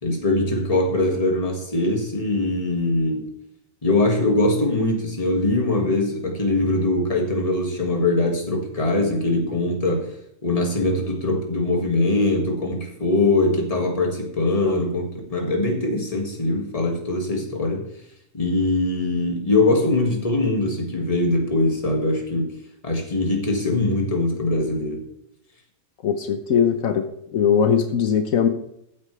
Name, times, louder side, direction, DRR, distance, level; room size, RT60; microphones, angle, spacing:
voice 1, 0.0-3.3 3.8-10.1 10.4-17.9 18.3-22.5 22.8-25.1, left 2 dB, 25° left, 1.9 m, -22 dB
voice 2, 26.0-27.1 27.3-28.5, left 7 dB, 75° left, 1.3 m, -20 dB
14.5 x 8.4 x 3.2 m
omnidirectional pair, 1.4 m